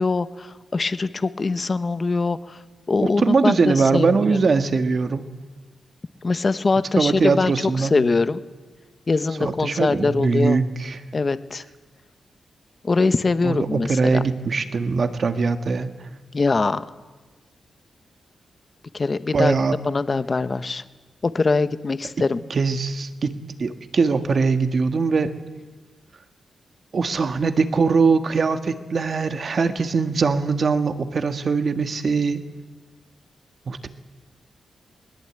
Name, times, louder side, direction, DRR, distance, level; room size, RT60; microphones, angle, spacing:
voice 1, 0.0-2.6 2.9-4.4 6.2-8.4 9.1-10.6 11.1-11.6 12.8-14.2 16.3-16.8 18.9-19.5 19.8-20.8 21.2-22.4, left 3 dB, 35° left, 13 dB, 0.9 m, -22 dB
voice 2, 3.0-5.3 7.0-8.0 9.4-11.0 13.4-15.9 19.3-19.8 22.5-25.3 26.9-32.4 33.7-33.9, right 4 dB, 45° right, 9 dB, 1.7 m, -21 dB
21.0 x 20.5 x 8.9 m, 1.3 s
wide cardioid pair, 115°, 0 cm